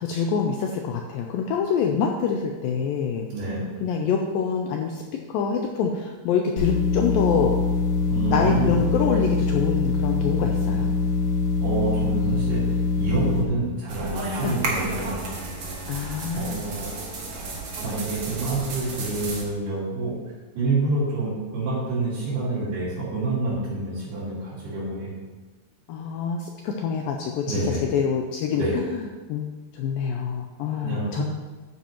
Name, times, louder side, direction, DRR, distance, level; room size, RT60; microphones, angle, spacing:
voice 1, 0.0-3.3 3.8-5.0 5.3-7.6 8.3-10.9 14.4-14.6 15.9-16.6 25.9-28.8 29.3-29.5 29.7-31.2, left 6 dB, 85° left, 2 dB, 2.1 m, -26 dB
voice 2, 3.3-3.6 8.1-8.7 11.6-12.6 13.0-15.2 16.3-16.9 17.8-20.1 20.5-25.1 27.5-27.8 28.5-28.7 30.8-31.2, right 3 dB, 75° right, -12 dB, 5.0 m, -27 dB
sound 1, 6.6-13.4, left 4 dB, 65° left, 2.1 m, -23 dB
sound 2, 13.9-19.4, right 2 dB, 55° right, 1.6 m, -32 dB
12.5 x 8.9 x 3.0 m, 1.3 s
omnidirectional pair, 4.6 m